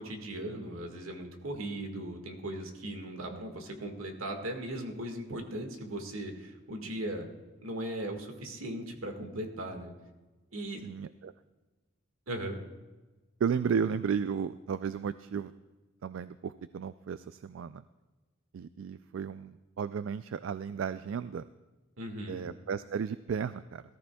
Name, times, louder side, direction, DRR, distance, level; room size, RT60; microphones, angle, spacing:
voice 1, 0.0-7.2 7.6-9.9 10.5-10.8 12.3-12.6 22.0-22.5, right 1 dB, 85° right, 4 dB, 1.8 m, -38 dB
voice 2, 10.8-11.3 13.4-15.5 16.0-17.8 18.5-21.5 22.3-23.8, right 6 dB, 65° right, 13 dB, 0.3 m, -34 dB
18.5 x 14.0 x 2.3 m, 1.2 s
head